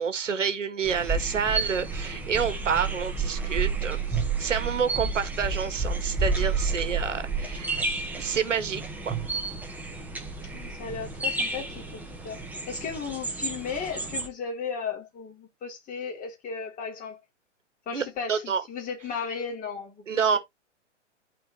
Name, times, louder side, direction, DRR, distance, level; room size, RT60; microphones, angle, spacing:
voice 1, 0.0-9.2 17.9-18.6 20.1-20.4, right 6 dB, 85° right, 1.9 m, -28 dB
sound 1, 0.8-14.3, right 4 dB, 5° right, 1.5 m, -31 dB
voice 2, 10.5-17.2 17.8-20.4, left 6 dB, 20° left, 3.5 m, -35 dB
12.5 x 4.6 x 3.1 m
hypercardioid pair, 130°, 36 cm